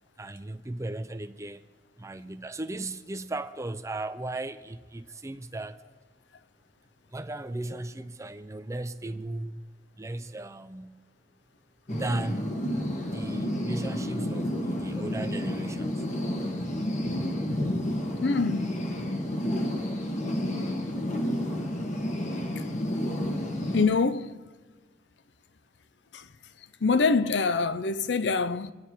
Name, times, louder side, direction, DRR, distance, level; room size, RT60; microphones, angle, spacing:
voice 1, 0.2-1.6 2.0-5.8 7.1-9.6 10.0-11.0 11.9-12.5 13.1-16.0, right 2 dB, 15° right, 0.6 m, -36 dB
sound 1, 11.9-23.8, left 1 dB, 45° left, 1.4 m, -30 dB
voice 2, 18.2-18.7 23.7-24.4 26.1-26.2 26.8-28.7, left 4 dB, 75° left, 0.6 m, -25 dB
26.0 x 9.7 x 4.4 m
head